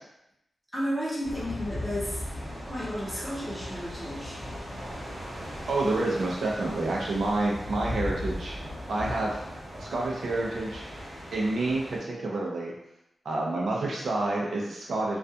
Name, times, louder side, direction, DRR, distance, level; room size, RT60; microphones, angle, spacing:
voice 1, 0.7-4.4, equal, 10° left, -6 dB, 0.7 m, -33 dB
sound 1, 1.2-12.0, left 1 dB, 30° right, 0.9 m, -38 dB
voice 2, 5.7-8.6 8.9-9.4 9.8-10.9 11.3-12.7 13.2-15.2, right 2 dB, 70° right, -3 dB, 0.5 m, -28 dB
2.3 x 2.3 x 2.6 m, 0.83 s
wide cardioid pair, 160°, 0 cm